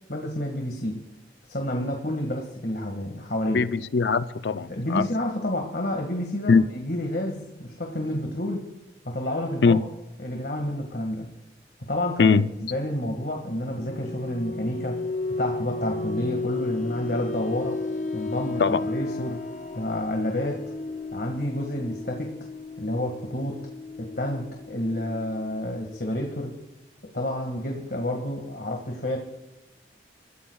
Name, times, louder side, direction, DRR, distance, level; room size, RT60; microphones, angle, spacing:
voice 1, 0.1-1.0 1.5-3.7 4.7-8.7 9.1-9.8 10.2-11.3 11.9-12.4 12.7-15.0 15.4-17.8 18.1-19.4 19.7-20.6 21.1-22.3 22.8-23.6 24.0-26.5 27.1-29.2, left 1 dB, 60° left, 1.9 m, -29 dB
voice 2, 3.5-5.0 6.5-6.7 9.6-9.8 12.2-12.5 18.6-18.8, left 4 dB, 80° left, 0.5 m, -21 dB
sound 1, 13.5-26.0, left 3 dB, 45° left, 0.7 m, -34 dB
29.5 x 14.5 x 2.4 m
head